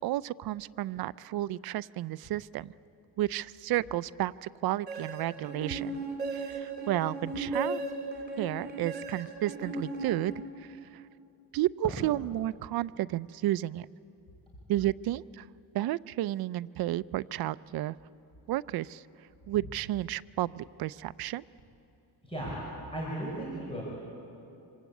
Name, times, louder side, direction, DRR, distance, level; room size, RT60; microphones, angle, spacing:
voice 1, 0.0-2.7 3.2-6.0 6.3-7.8 8.4-11.0 11.5-13.9 14.7-15.5 15.7-18.0 18.5-19.0 19.5-21.4, right 14 dB, 65° right, 17 dB, 0.6 m, -32 dB
sound 1, 4.9-10.7, right 3 dB, 25° right, 4.4 m, -36 dB
voice 2, 22.2-22.6 22.9-23.8, right 1 dB, 15° left, -4 dB, 5.4 m, -35 dB
26.0 x 25.5 x 8.4 m, 2.8 s
cardioid pair, 150°, 39 cm